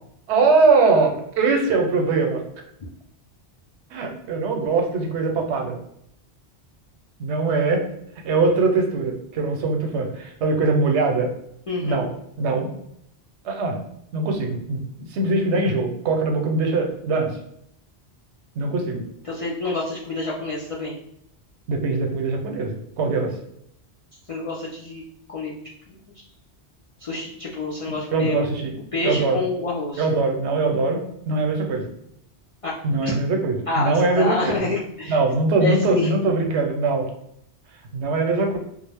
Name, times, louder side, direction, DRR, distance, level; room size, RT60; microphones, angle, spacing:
voice 1, 0.3-2.4 3.9-5.8 7.2-7.8 8.2-11.3 11.8-12.1 12.4-12.7 13.4-13.8 14.1-14.8 15.1-17.4 18.6-19.0 21.7-23.3 28.1-28.7 29.0-29.4 30.0-31.8 32.8-34.5 35.1-37.1 37.9-38.6, right 3 dB, 90° right, 3 dB, 0.9 m, -22 dB
voice 2, 11.7-12.0 19.2-21.0 24.3-25.0 25.3-25.5 25.9-26.2 27.0-28.5 28.9-30.1 32.6-32.7 33.0-33.1 33.7-35.2 35.6-36.1, left 3 dB, 60° left, -6 dB, 0.3 m, -27 dB
2.3 x 2.0 x 3.3 m, 0.73 s
omnidirectional pair, 1.1 m